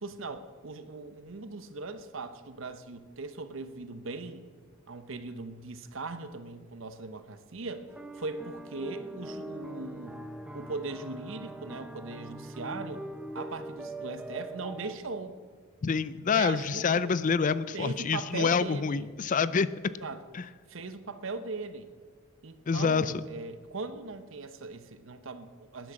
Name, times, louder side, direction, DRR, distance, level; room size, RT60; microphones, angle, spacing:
voice 1, 0.0-4.5 4.9-13.0 13.3-15.3 16.3-17.4 17.7-19.1 20.0-20.2 20.7-21.9 22.4-25.9, right 3 dB, 65° right, 11 dB, 0.9 m, -39 dB
sound 1, 7.9-15.0, right 1 dB, 5° right, 0.6 m, -42 dB
voice 2, 15.8-19.7 20.3-20.4 22.7-23.2, left 5 dB, 40° left, 16 dB, 0.4 m, -27 dB
13.0 x 10.5 x 6.3 m, 1.5 s
head